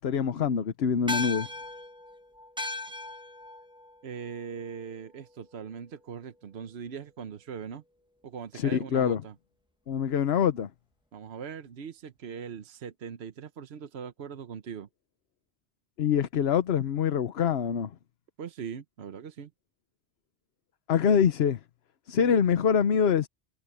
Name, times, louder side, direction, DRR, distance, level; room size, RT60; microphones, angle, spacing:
voice 1, 0.0-1.5 8.5-9.2 9.9-10.7 16.0-17.9 20.9-21.6 22.1-23.3, left 7 dB, 70° left, 1.1 m, -25 dB
sound 1, 1.1-5.8, left 2 dB, 5° right, 1.2 m, -38 dB
voice 2, 4.0-7.8 8.2-9.3 11.1-14.9 18.4-19.5, right 7 dB, 70° right, 1.2 m, -40 dB
omnidirectional pair, 1.1 m